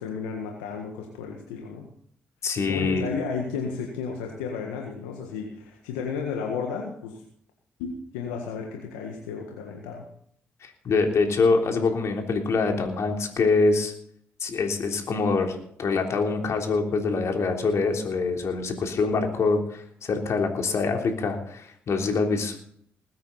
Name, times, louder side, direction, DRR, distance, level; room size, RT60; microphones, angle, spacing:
voice 1, 0.0-1.9 2.5-7.2 7.8-10.1, left 5 dB, 85° left, 2 dB, 1.6 m, -33 dB
voice 2, 2.4-3.1 10.6-13.9 14.4-22.6, left 4 dB, 60° left, 3 dB, 3.4 m, -25 dB
20.5 x 9.3 x 4.1 m, 0.62 s
hypercardioid pair, 45°, 6 cm